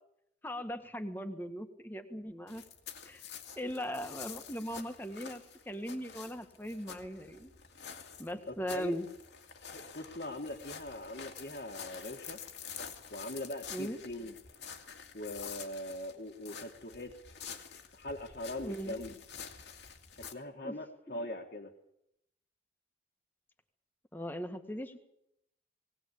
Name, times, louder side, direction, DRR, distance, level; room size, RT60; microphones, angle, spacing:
voice 1, 0.4-2.6 3.0-3.2 3.6-7.5 8.2-9.1 13.7-14.0 18.6-19.0 20.6-20.7 24.1-25.0, equal, 10° left, 7 dB, 1.7 m, -39 dB
sound 1, 2.5-20.3, left 7 dB, 80° left, 2.2 m, -48 dB
voice 2, 8.5-9.0 9.7-12.4 13.1-14.3 15.1-17.2 17.9-19.1 20.3-21.7, left 1 dB, 60° left, 0 dB, 1.8 m, -41 dB
19.5 x 18.5 x 8.5 m, 0.79 s
head